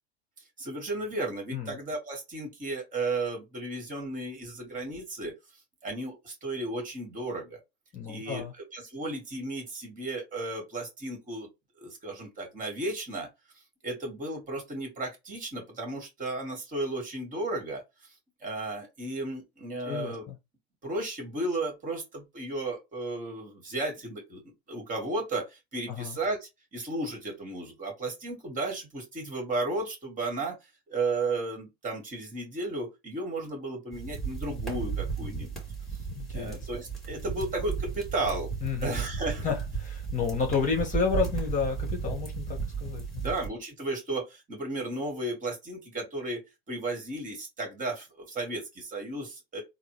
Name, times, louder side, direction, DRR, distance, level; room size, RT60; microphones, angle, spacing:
voice 1, 0.6-5.3 5.8-7.6 8.1-11.5 11.8-13.3 13.8-18.1 18.4-20.2 20.8-24.4 24.7-35.5 36.3-38.5 38.8-39.5 43.2-49.6, right 2 dB, 25° right, 1.9 m, -34 dB
voice 2, 7.9-8.5 19.8-20.1 25.9-26.1 36.1-36.6 38.6-39.0 39.4-43.2, left 6 dB, 25° left, 1.2 m, -31 dB
sound 1, 33.9-43.5, right 6 dB, ahead, 1.7 m, -34 dB
3.8 x 2.1 x 3.1 m
hypercardioid pair, 100°, 32 cm